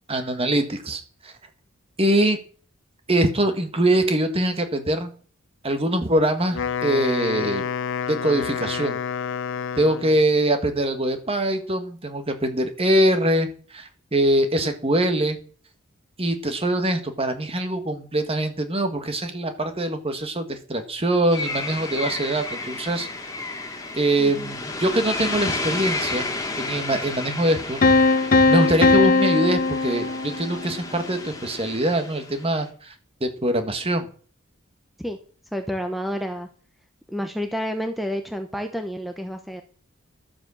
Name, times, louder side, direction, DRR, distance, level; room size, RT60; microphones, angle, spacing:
voice 1, 0.1-1.3 2.0-2.4 3.1-5.1 5.6-7.6 8.1-9.0 9.8-15.4 16.2-23.1 24.0-26.3 26.6-27.8 28.5-32.9 33.2-34.1, right 1 dB, 25° right, 7 dB, 1.6 m, -23 dB
Wind instrument woodwind instrument, 6.4-10.3, left 7 dB, 60° left, 0.5 m, -29 dB
sound 1, 21.3-32.7, left 3 dB, 15° left, 2.2 m, -32 dB
voice 2, 24.2-24.5 35.0-35.2 35.5-36.5 37.1-39.6, equal, ahead, 6 dB, 0.8 m, -29 dB
Piano, 27.8-30.7, left 3 dB, 40° left, 0.9 m, -19 dB
12.0 x 7.4 x 7.1 m, 0.42 s
head